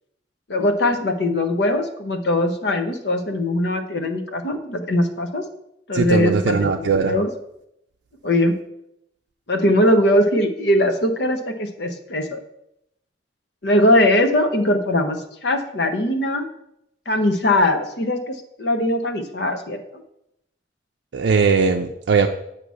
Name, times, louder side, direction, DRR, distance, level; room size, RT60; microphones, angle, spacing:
voice 1, 0.5-5.4 5.9-7.3 8.2-8.5 9.5-12.4 13.6-16.5 17.1-20.0, left 1 dB, 70° left, 6 dB, 0.8 m, -20 dB
voice 2, 5.9-7.2 21.1-22.3, right 5 dB, 80° right, 4 dB, 0.4 m, -19 dB
8.1 x 2.9 x 6.2 m, 0.79 s
head